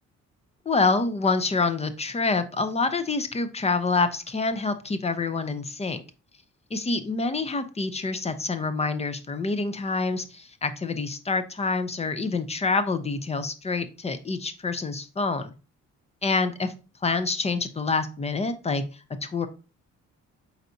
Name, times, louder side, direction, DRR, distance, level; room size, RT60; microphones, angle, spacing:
voice 1, 0.7-6.0 6.7-15.5 16.2-16.7 17.0-18.8 19.2-19.5, left 3 dB, 20° left, 10 dB, 0.5 m, -27 dB
4.5 x 4.0 x 2.6 m, 0.34 s
cardioid pair, 90°, 30 cm